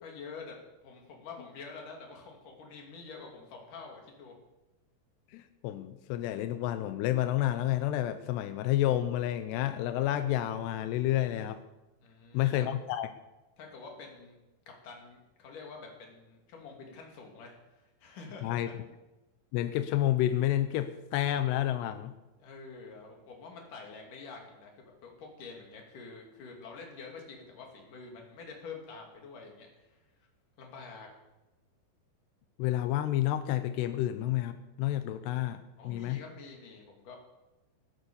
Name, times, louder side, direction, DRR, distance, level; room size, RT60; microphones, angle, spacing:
voice 1, 0.0-0.6 0.8-4.3 12.0-12.7 13.6-14.4 14.7-18.7 22.4-30.0 30.6-31.1 35.8-37.2, left 4 dB, 55° left, 0 dB, 4.1 m, -47 dB
voice 2, 5.3-11.6 12.3-13.1 18.4-18.7 19.5-22.2 32.6-36.2, left 13 dB, 90° left, 10 dB, 2.9 m, -30 dB
18.0 x 9.2 x 7.1 m, 1.0 s
omnidirectional pair, 4.7 m